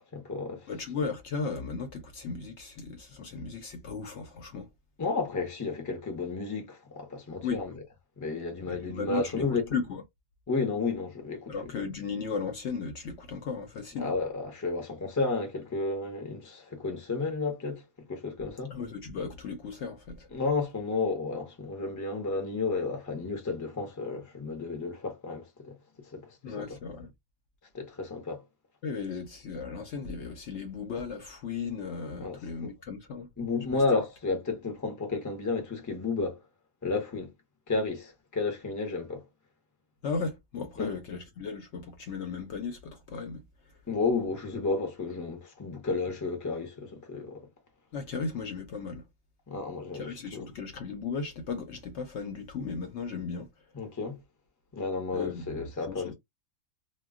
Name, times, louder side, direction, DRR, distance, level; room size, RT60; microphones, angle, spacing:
voice 1, 0.0-0.7 5.0-7.7 8.2-9.6 10.5-11.5 13.9-17.8 18.1-18.7 20.3-25.8 26.1-26.8 27.7-28.4 32.2-32.7 33.4-36.4 36.8-37.3 37.7-39.2 40.8-40.9 43.9-47.4 49.5-50.4 53.7-54.2 54.7-56.1, left 3 dB, 20° left, 0.5 m, -32 dB
voice 2, 0.7-4.7 7.4-7.6 8.7-10.0 11.5-14.1 18.7-20.3 26.4-27.1 28.8-33.3 33.7-33.8 40.0-43.4 47.9-49.1 49.9-53.5 55.1-56.1, left 5 dB, 65° left, 0.8 m, -36 dB
2.2 x 2.2 x 3.5 m
omnidirectional pair, 1.5 m